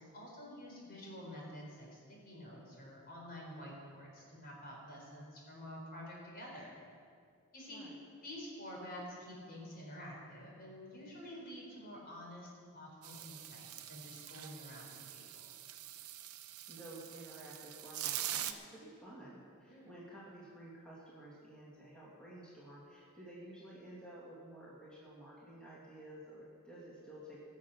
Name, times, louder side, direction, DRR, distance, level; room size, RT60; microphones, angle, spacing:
voice 1, 0.1-6.7 7.5-7.8 8.2-15.5 19.7-19.9, equal, 45° left, -3 dB, 4.2 m, -49 dB
sound 1, 13.0-18.5, right 12 dB, 85° right, 0.8 m, -44 dB
voice 2, 16.7-27.4, right 1 dB, 5° left, -7 dB, 2.5 m, -52 dB
21.0 x 7.4 x 6.1 m, 2.3 s
head